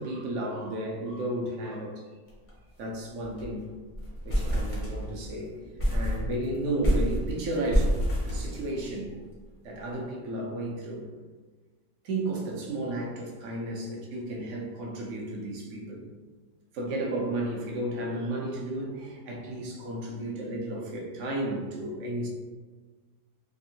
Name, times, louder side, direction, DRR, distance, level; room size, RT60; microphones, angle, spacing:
voice 1, 0.0-2.0 2.8-3.7 4.2-9.2 9.6-11.1 12.0-16.1 16.7-22.3, right 1 dB, 65° right, -1 dB, 0.8 m, -33 dB
sound 1, 2.3-2.5 2.8-2.9 3.2-3.6 3.9-5.3 5.8-9.1, equal, 45° left, 0.4 m, -28 dB
3.6 x 2.4 x 2.7 m, 1.4 s
omnidirectional pair, 1.8 m